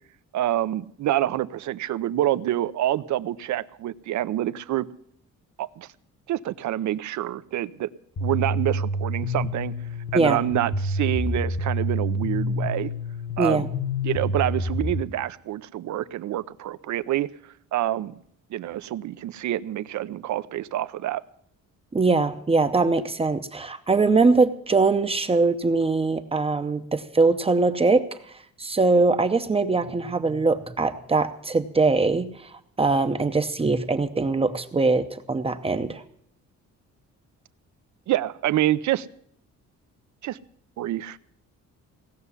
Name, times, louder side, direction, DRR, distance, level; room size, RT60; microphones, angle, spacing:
voice 1, 0.3-4.9 5.6-5.9 6.3-7.9 8.2-9.7 10.1-12.9 13.4-13.7 14.0-17.3 17.7-18.1 18.5-21.2 38.1-39.1 40.2-40.4 40.8-41.2, right 13 dB, 65° right, 15 dB, 0.7 m, -27 dB
sound 1, 8.2-15.0, left 1 dB, 40° left, 1.1 m, -28 dB
voice 2, 13.4-13.7 21.9-28.1 28.6-32.5 32.8-36.0, right 3 dB, 20° right, 9 dB, 0.7 m, -22 dB
17.5 x 6.8 x 9.7 m, 0.67 s
cardioid pair, 155°, 31 cm